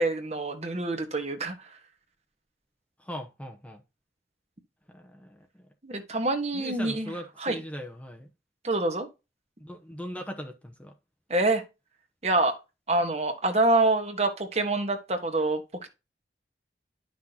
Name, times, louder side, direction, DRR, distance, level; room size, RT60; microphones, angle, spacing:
voice 1, 0.0-1.5 5.8-7.1 7.4-7.6 8.6-9.1 11.3-11.6 12.2-12.5 12.9-15.9, right 2 dB, 35° right, 1.4 m, -26 dB
voice 2, 3.0-3.8 4.9-5.6 6.5-8.3 9.6-10.9, equal, 10° left, 0.9 m, -40 dB
11.5 x 6.1 x 2.9 m
head